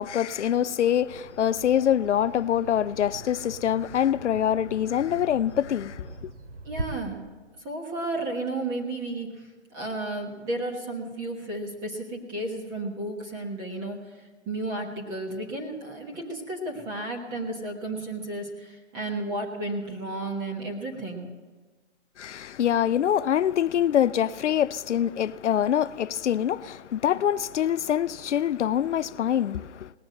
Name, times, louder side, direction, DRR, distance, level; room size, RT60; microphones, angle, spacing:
voice 1, 0.0-6.3 22.2-29.9, left 10 dB, 80° left, 0.6 m, -25 dB
Bird vocalization bird call bird song, 1.1-6.8, right 2 dB, 90° right, 2.6 m, -42 dB
voice 2, 6.6-7.2 7.6-9.5 9.7-14.0 14.4-21.3, right 2 dB, 10° right, 1.3 m, -33 dB
19.0 x 7.2 x 7.7 m
hypercardioid pair, 165°, 35 cm